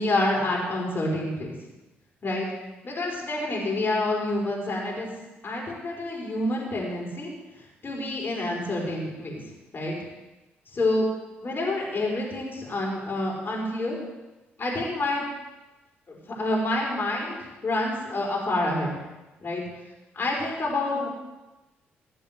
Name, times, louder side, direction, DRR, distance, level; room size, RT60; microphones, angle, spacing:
voice 1, 0.0-1.5 2.2-2.5 2.8-5.1 5.4-7.3 7.8-9.4 9.7-9.9 10.7-11.1 11.4-14.0 14.6-15.2 16.1-18.9 19.4-19.6 20.1-21.1, left 2 dB, 35° left, -3 dB, 5.4 m, -28 dB
17.5 x 6.7 x 7.6 m, 1.0 s
figure-of-eight pair, 40°, 6 cm